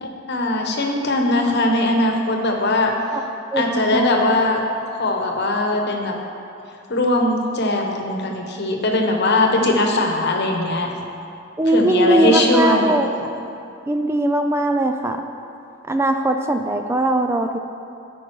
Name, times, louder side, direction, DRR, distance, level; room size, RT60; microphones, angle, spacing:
voice 1, 0.0-2.9 3.6-4.6 5.0-6.1 6.9-10.9 11.7-12.9, left 2 dB, 60° left, 2 dB, 1.1 m, -20 dB
voice 2, 3.5-4.3 11.6-13.3 13.9-15.2 15.9-17.6, right 1 dB, 15° right, 6 dB, 0.3 m, -20 dB
12.0 x 5.2 x 4.7 m, 2.6 s
head